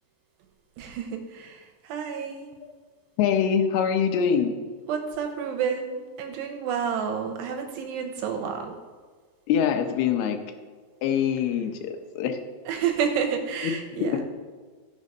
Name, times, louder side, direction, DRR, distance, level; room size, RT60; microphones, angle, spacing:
voice 1, 0.8-2.5 4.9-8.8 12.7-14.2, right 7 dB, 85° right, 4 dB, 2.9 m, -30 dB
voice 2, 3.2-4.6 9.5-10.4 11.0-12.4 13.6-13.7 14.1-14.2, left 8 dB, 75° left, 6 dB, 2.7 m, -24 dB
13.5 x 4.7 x 5.3 m, 1.5 s
omnidirectional pair, 4.8 m